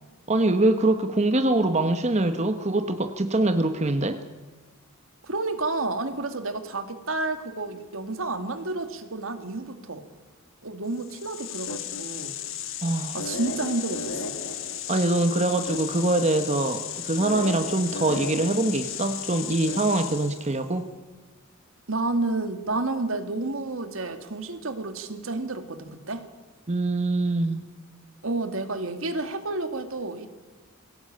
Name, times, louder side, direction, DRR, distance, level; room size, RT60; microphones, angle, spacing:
voice 1, 0.3-4.2 12.8-13.2 14.9-20.9 26.7-27.6, right 2 dB, 30° right, 8 dB, 1.1 m, -24 dB
voice 2, 5.2-10.0 10.6-12.4 13.1-14.4 21.9-26.3 28.2-30.3, right 2 dB, 70° right, 8 dB, 2.0 m, -30 dB
sound 1, 11.0-20.6, left 7 dB, 65° left, 1.8 m, -34 dB
22.0 x 17.0 x 8.7 m, 1.2 s
head